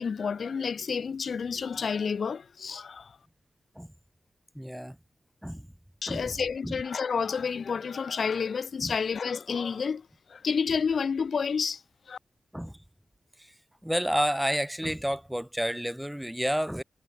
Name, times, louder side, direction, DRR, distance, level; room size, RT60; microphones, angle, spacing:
voice 1, 0.0-3.2 6.0-11.8 12.1-12.2, left 6 dB, 60° left, 0.6 m, -30 dB
voice 2, 4.5-5.0 5.4-5.7 6.1-6.4 6.6-6.8 8.8-8.9 12.5-12.8 13.4-13.5 13.8-16.8, equal, 5° right, 1.4 m, -30 dB
wide cardioid pair, 135°, 0 cm